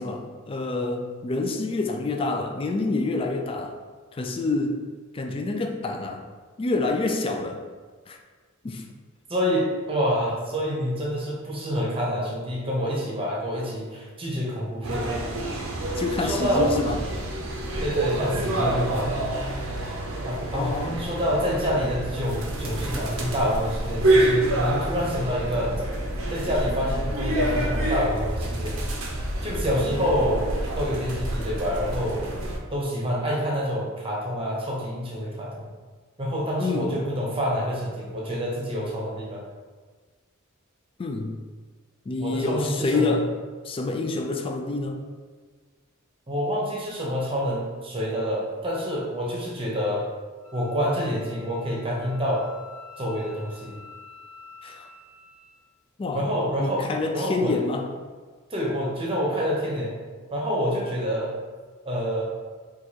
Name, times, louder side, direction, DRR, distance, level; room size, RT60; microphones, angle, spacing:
voice 1, 0.0-3.7 4.1-4.8 5.1-6.2 6.6-7.6 8.1-8.2 8.6-8.8 16.0-17.0 20.5-21.0 36.6-37.0 41.0-41.4 42.1-43.3 43.6-45.0 54.6-54.9 56.0-56.3 56.6-57.9, left 3 dB, 25° left, 4 dB, 0.3 m, -27 dB
voice 2, 9.3-15.2 16.2-16.7 17.8-19.2 20.2-25.8 26.3-28.8 29.4-30.5 30.8-32.2 32.7-35.7 36.2-39.4 42.2-43.1 46.3-50.1 50.5-52.5 53.0-53.7 56.1-57.5 58.5-59.9 60.3-61.3 61.8-62.2, equal, 25° right, -3 dB, 0.8 m, -27 dB
sound 1, 14.8-32.6, right 1 dB, 75° right, 0.6 m, -27 dB
Wind instrument woodwind instrument, 50.4-55.6, left 4 dB, 85° left, 1.3 m, -48 dB
4.6 x 2.4 x 2.8 m, 1.5 s
head